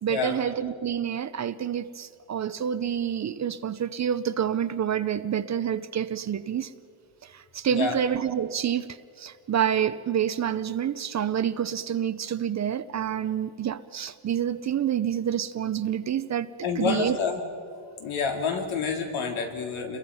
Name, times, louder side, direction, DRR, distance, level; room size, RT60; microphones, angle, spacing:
voice 1, 0.0-6.7 7.2-16.5 16.8-17.2, right 9 dB, 35° right, 0.6 m, -28 dB
voice 2, 16.6-17.4 18.0-20.0, left 5 dB, 75° left, 3.7 m, -28 dB
29.0 x 22.5 x 5.6 m
cardioid pair, 150°, 48 cm